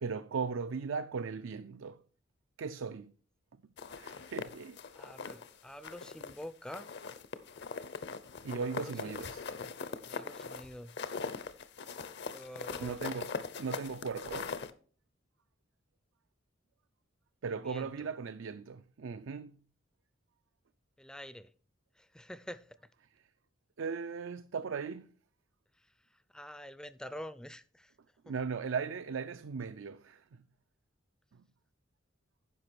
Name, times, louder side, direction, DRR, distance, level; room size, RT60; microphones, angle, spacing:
voice 1, 0.0-2.0 2.6-3.1 4.0-4.8 8.4-9.4 12.8-14.5 17.4-19.6 23.8-25.1 28.2-30.2, right 5 dB, 75° right, 0.4 m, -38 dB
sound 1, 3.8-5.5 5.8-6.4 6.7-14.7, left 5 dB, 60° left, 0.7 m, -41 dB
voice 2, 4.9-6.9 8.8-9.2 10.0-10.9 12.3-13.0 17.5-17.9 21.0-21.5 22.0-22.7 26.3-27.9, equal, 5° left, 0.4 m, -47 dB
9.9 x 6.0 x 4.5 m
head